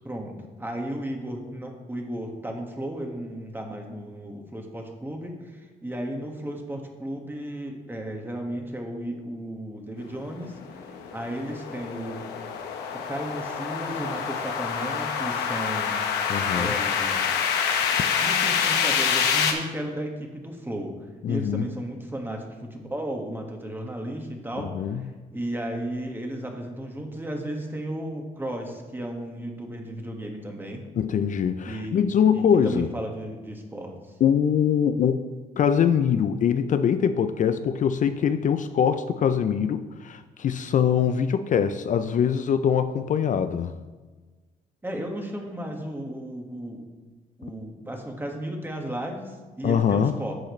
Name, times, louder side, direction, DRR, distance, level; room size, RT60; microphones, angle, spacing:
voice 1, 0.6-10.8 11.1-12.3 12.9-16.0 16.5-17.4 18.2-20.9 21.3-25.0 25.3-30.8 31.6-32.0 32.3-33.9 44.8-46.8 47.4-50.4, right 1 dB, 15° right, 2 dB, 1.6 m, -34 dB
sound 1, 10.4-19.5, left 7 dB, 90° left, 1.0 m, -26 dB
voice 2, 16.3-16.7 21.2-21.6 24.6-25.0 31.0-32.9 34.2-43.8 49.6-50.1, left 8 dB, 50° left, 10 dB, 0.5 m, -23 dB
10.0 x 6.4 x 3.2 m, 1.3 s
supercardioid pair, 75°, 16 cm